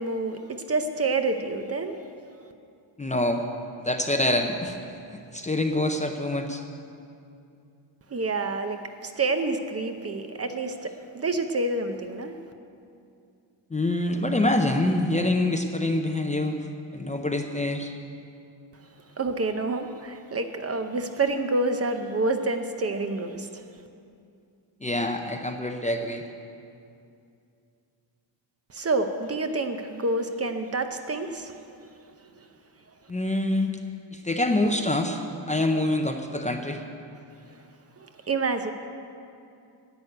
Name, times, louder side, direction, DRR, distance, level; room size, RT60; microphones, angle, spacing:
voice 1, 0.0-1.9 8.1-12.4 19.2-23.5 28.7-31.6 32.4-32.5 38.0-38.7, right 3 dB, 30° right, 7 dB, 0.6 m, -28 dB
voice 2, 3.0-3.4 3.8-4.8 5.1-6.6 13.7-16.6 16.9-17.9 24.8-26.2 33.1-33.8 34.1-36.8, left 1 dB, 15° left, 4 dB, 0.5 m, -26 dB
11.0 x 8.0 x 9.8 m, 2.5 s
wide cardioid pair, 175°, 46 cm